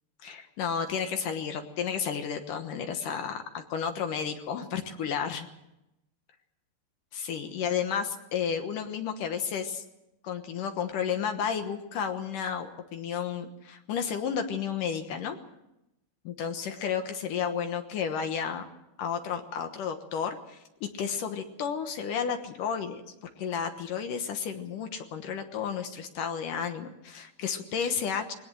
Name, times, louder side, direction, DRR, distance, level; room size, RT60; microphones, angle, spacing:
voice 1, 0.2-5.5 7.1-9.8 10.2-15.4 16.2-18.6 19.0-28.3, left 7 dB, 65° left, 6 dB, 2.2 m, -32 dB
21.5 x 18.5 x 7.9 m, 0.88 s
omnidirectional pair, 5.2 m